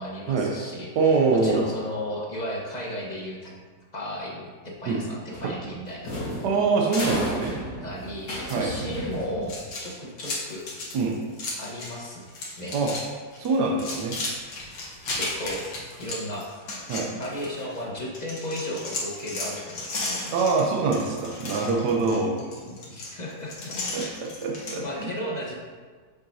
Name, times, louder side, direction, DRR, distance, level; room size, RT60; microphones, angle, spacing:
voice 1, 0.0-3.5 3.9-6.2 6.9-7.3 7.8-10.6 11.6-12.3 12.6-12.9 15.2-15.6 16.0-16.4 17.1-20.4 22.6-24.1 24.8-25.5, equal, 30° left, -3 dB, 1.1 m, -35 dB
voice 2, 1.0-1.7 4.9-5.0 6.4-7.5 8.5-8.7 10.9-11.2 12.7-12.9 13.4-14.2 16.9-17.1 20.3-22.4 23.9-25.1, right 4 dB, 70° right, 0 dB, 1.3 m, -24 dB
sound 1, 5.3-9.7, left 1 dB, 65° left, 2.2 m, -33 dB
sound 2, 9.4-12.0 12.3-13.0 13.3-17.8 18.1-24.8, left 2 dB, 80° left, 2.1 m, -34 dB
7.9 x 6.4 x 2.7 m, 1.5 s
omnidirectional pair, 1.9 m